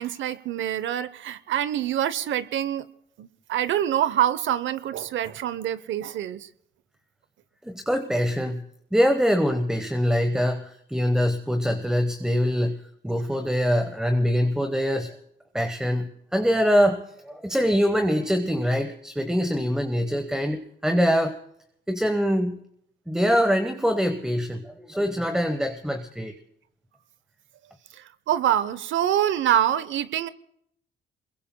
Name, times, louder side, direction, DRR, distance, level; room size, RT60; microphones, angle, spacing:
voice 1, 0.0-2.9 3.2-6.5 28.0-30.3, right 11 dB, 70° right, 16 dB, 0.8 m, -25 dB
voice 2, 7.6-8.6 8.9-15.1 15.5-21.4 21.9-22.6 23.1-26.3, equal, 5° right, 6 dB, 1.1 m, -24 dB
27.0 x 22.0 x 2.2 m, 0.72 s
cardioid pair, 90°, 20 cm